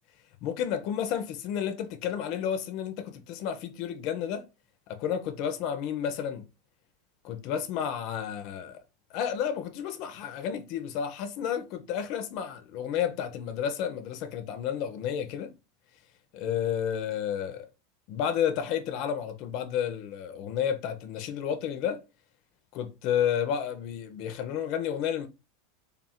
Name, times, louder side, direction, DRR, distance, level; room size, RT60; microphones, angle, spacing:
voice 1, 0.4-4.5 4.9-6.4 7.2-8.8 9.1-15.5 16.3-17.7 18.1-22.0 22.7-25.3, left 9 dB, 55° left, 0.6 m, -31 dB
3.4 x 2.4 x 4.2 m
hypercardioid pair, 110°, 0 cm